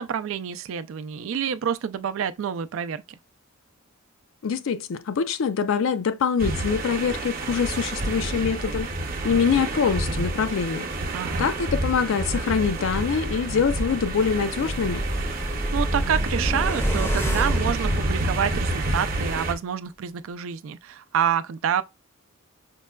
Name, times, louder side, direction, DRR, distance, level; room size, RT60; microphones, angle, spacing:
voice 1, 0.0-3.2 11.1-11.5 15.7-21.8, right 8 dB, 70° right, 0.3 m, -28 dB
voice 2, 4.4-8.9 9.2-10.9 11.4-15.0, left 6 dB, 70° left, 0.4 m, -24 dB
sound 1, 6.4-19.5, right 2 dB, 45° right, 0.7 m, -29 dB
sound 2, 13.6-18.8 19.1-19.2, equal, 10° left, 0.5 m, -29 dB
5.2 x 2.2 x 2.2 m
head